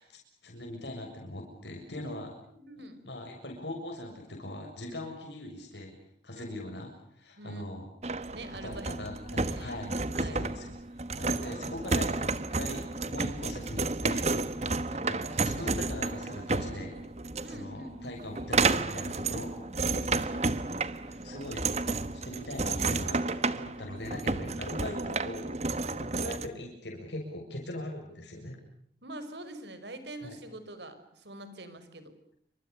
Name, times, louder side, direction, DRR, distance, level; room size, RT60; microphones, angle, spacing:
voice 1, 0.0-2.4 3.1-6.0 6.2-7.9 8.5-14.4 14.9-17.0 17.5-19.9 20.7-21.6 22.1-23.2 23.6-25.6 26.0-28.6 30.2-30.4, left 1 dB, 90° left, 1 dB, 7.1 m, -41 dB
voice 2, 2.5-3.0 6.3-6.5 7.4-7.7 8.3-8.9 9.4-9.8 10.1-10.4 17.4-18.0 19.9-20.3 29.0-32.1, right 1 dB, 85° right, 11 dB, 5.6 m, -45 dB
sound 1, 8.0-26.5, right 3 dB, 40° right, 1.4 m, -31 dB
28.5 x 26.0 x 6.8 m, 0.68 s
head